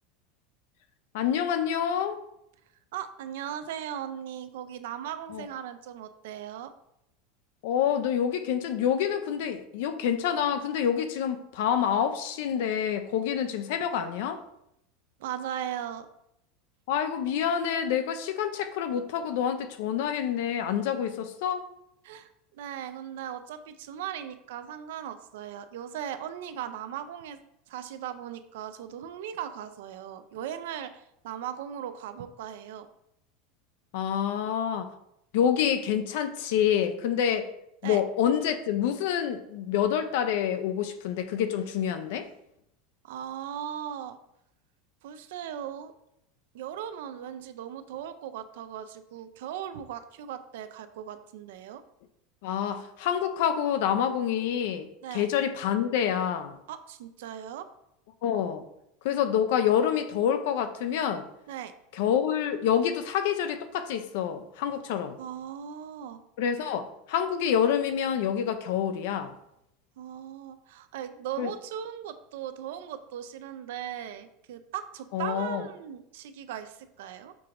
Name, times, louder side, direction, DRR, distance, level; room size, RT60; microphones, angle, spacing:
voice 1, 1.1-2.2 5.3-5.4 7.6-14.4 16.9-21.7 33.9-34.9 35.3-37.5 37.8-42.3 52.4-56.6 58.2-58.6 59.0-61.2 62.0-65.2 66.4-69.3 71.4-71.5 75.1-75.6, left 9 dB, 65° left, 0.4 m, -27 dB
voice 2, 2.9-6.7 15.2-16.1 22.0-27.4 27.7-32.9 37.8-38.0 43.0-44.2 45.0-45.9 46.5-51.8 55.0-55.3 56.7-57.7 61.5-61.7 65.2-66.2 70.0-77.4, right 10 dB, 75° right, 0.4 m, -38 dB
6.0 x 2.9 x 2.5 m
supercardioid pair, 170°, 0 cm